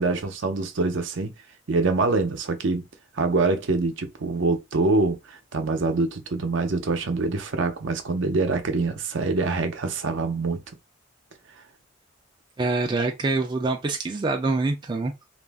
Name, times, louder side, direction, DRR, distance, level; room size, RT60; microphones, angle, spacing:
voice 1, 0.0-1.3 1.7-2.9 3.1-10.6, right 3 dB, 65° right, 0.6 m, -25 dB
voice 2, 12.6-15.1, right 3 dB, 25° right, 0.3 m, -25 dB
2.4 x 2.0 x 3.3 m
head